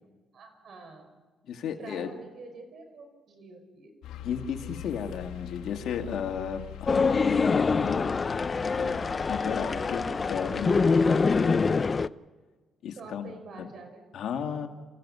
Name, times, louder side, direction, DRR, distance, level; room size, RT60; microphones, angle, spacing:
voice 1, 0.3-1.1 1.7-3.9 13.0-14.1 14.4-14.7, right 3 dB, 60° right, 5 dB, 5.7 m, -47 dB
voice 2, 1.4-2.1 4.2-8.1 8.7-9.0 9.3-11.7 12.8-13.7 14.1-14.7, left 7 dB, 70° left, 4 dB, 2.2 m, -34 dB
sound 1, 4.0-11.5, left 12 dB, 90° left, 1.3 m, -43 dB
sound 2, 6.9-12.1, left 4 dB, 35° left, 0.5 m, -25 dB
29.0 x 16.0 x 5.6 m, 1.4 s
cardioid pair, 90°, 0 cm